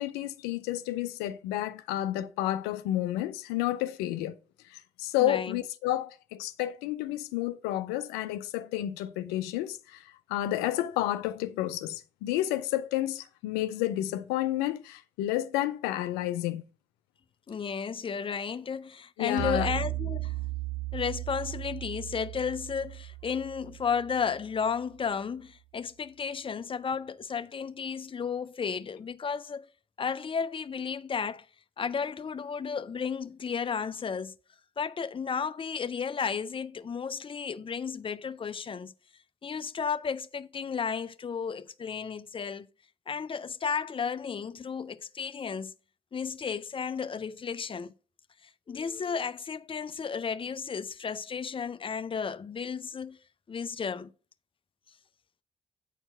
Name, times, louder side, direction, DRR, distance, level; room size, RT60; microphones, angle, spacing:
voice 1, 0.0-4.4 4.6-16.6 19.2-19.7, left 14 dB, 80° left, 0.5 m, -31 dB
voice 2, 5.2-5.6 17.5-20.3 20.9-29.7 30.0-31.5 31.8-34.3 34.8-38.9 39.4-42.7 43.1-45.7 46.1-47.9 48.7-53.2 53.5-54.1, left 6 dB, 30° left, 0.6 m, -33 dB
sound 1, 19.4-24.8, right 15 dB, 55° right, 0.5 m, -36 dB
9.0 x 4.4 x 4.3 m
hypercardioid pair, 45°, 17 cm